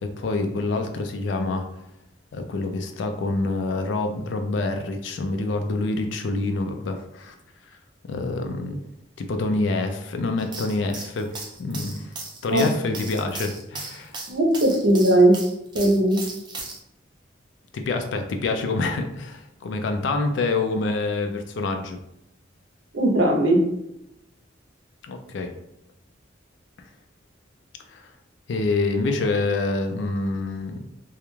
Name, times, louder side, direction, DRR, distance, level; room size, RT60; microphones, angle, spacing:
voice 1, 0.0-1.7 2.3-7.3 8.1-8.8 9.2-12.1 12.4-14.1 17.7-22.0 25.0-25.5 27.9-28.0 28.5-30.8, left 3 dB, 70° left, 6 dB, 0.4 m, -26 dB
sound 1, 10.4-16.8, right 3 dB, 25° right, 0.4 m, -37 dB
voice 2, 14.3-15.3 15.7-16.2 22.9-23.6, right 1 dB, 70° right, 1 dB, 0.6 m, -18 dB
2.4 x 2.1 x 3.0 m, 0.82 s
head